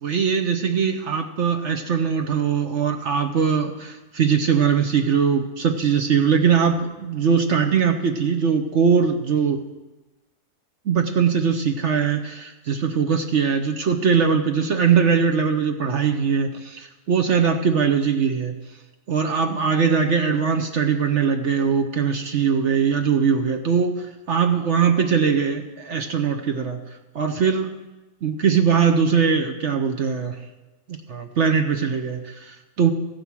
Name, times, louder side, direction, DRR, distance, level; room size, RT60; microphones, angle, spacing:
voice 1, 0.0-9.6 10.8-18.5 19.1-26.8 27.1-27.7 28.2-30.4 31.1-32.9, right 6 dB, 60° right, 5 dB, 1.1 m, -21 dB
14.5 x 9.1 x 6.1 m, 1.1 s
omnidirectional pair, 1.4 m